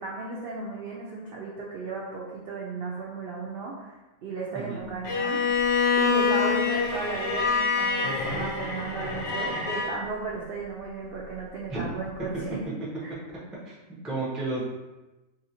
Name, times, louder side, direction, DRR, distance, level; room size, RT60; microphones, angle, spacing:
voice 1, 0.0-3.9 4.2-5.4 6.0-12.6 13.0-13.1, right 3 dB, 75° right, -3 dB, 0.5 m, -35 dB
Bowed string instrument, 5.0-10.0, left 5 dB, 60° left, 0.7 m, -26 dB
voice 2, 14.0-14.6, right 3 dB, ahead, -6 dB, 0.3 m, -31 dB
3.1 x 2.6 x 2.7 m, 1.1 s
omnidirectional pair, 1.5 m